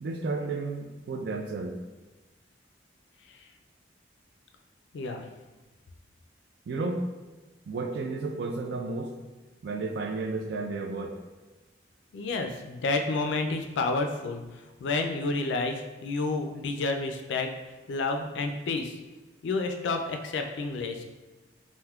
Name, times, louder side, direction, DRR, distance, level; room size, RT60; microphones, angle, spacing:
voice 1, 0.0-1.7 6.7-7.0 7.7-9.1 9.6-11.2, right 3 dB, 60° right, 5 dB, 0.3 m, -32 dB
voice 2, 4.9-5.2 12.1-14.4 14.8-17.5 17.9-18.9 19.4-21.0, left 3 dB, 70° left, 5 dB, 0.3 m, -30 dB
3.5 x 2.6 x 2.3 m, 1.2 s
head